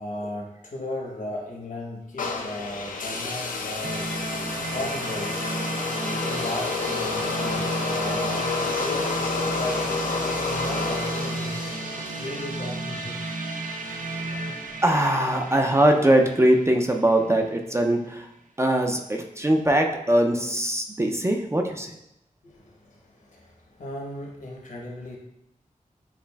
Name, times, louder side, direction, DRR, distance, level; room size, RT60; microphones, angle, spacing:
voice 1, 0.0-4.1 4.7-5.6 6.2-9.1 9.5-13.2 22.4-25.2, left 1 dB, 70° left, -1 dB, 0.9 m, -36 dB
sound 1, 2.2-12.4, left 4 dB, 90° left, 0.5 m, -29 dB
sound 2, 3.8-17.6, right 2 dB, 75° right, 0.5 m, -33 dB
voice 2, 14.8-18.3 18.6-21.9, right 1 dB, 20° right, 3 dB, 0.4 m, -21 dB
7.1 x 2.4 x 2.2 m, 0.82 s
wide cardioid pair, 90°, 14 cm